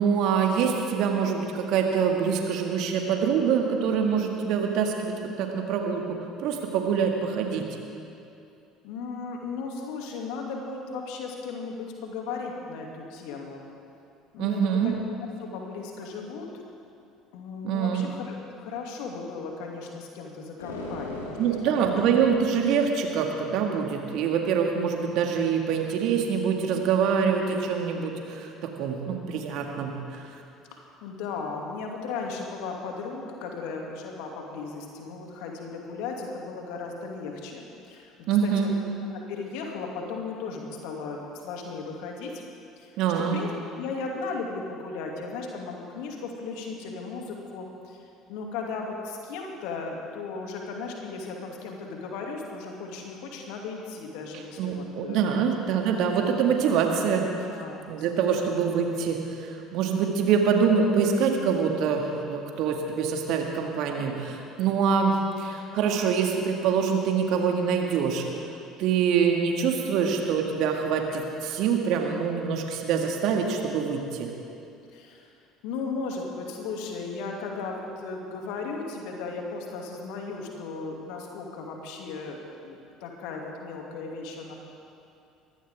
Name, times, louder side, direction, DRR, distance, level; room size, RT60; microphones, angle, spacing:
voice 1, 0.0-7.6 14.4-14.9 17.6-18.0 21.4-30.0 38.3-38.7 43.0-43.4 54.6-57.3 57.9-68.2 68.8-74.3, right 6 dB, 60° right, 2 dB, 2.1 m, -25 dB
voice 2, 8.8-13.7 14.3-16.5 17.3-21.4 21.6-21.8 30.7-38.1 38.4-38.7 39.0-42.4 42.8-43.5 43.8-55.2 57.4-57.8 58.1-58.6 65.7-66.2 74.9-75.3 75.6-84.5, left 4 dB, 65° left, 0 dB, 2.5 m, -36 dB
sound 1, 20.6-22.9, left 2 dB, 80° left, 2.0 m, -39 dB
22.0 x 16.0 x 3.7 m, 2.7 s
figure-of-eight pair, 60°, 0 cm